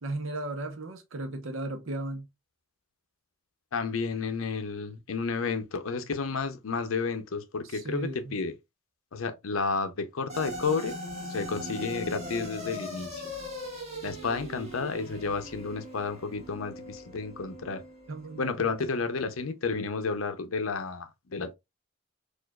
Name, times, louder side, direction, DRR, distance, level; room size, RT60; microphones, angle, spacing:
voice 1, 0.0-2.3 7.6-8.4 18.1-18.7, right 2 dB, 75° right, 0.8 m, -36 dB
voice 2, 3.7-8.6 9.1-10.9 11.3-13.2 14.0-17.8 18.4-21.5, left 4 dB, 90° left, 0.6 m, -31 dB
sound 1, 10.3-18.8, equal, 35° right, 1.6 m, -40 dB
4.4 x 2.5 x 2.3 m
head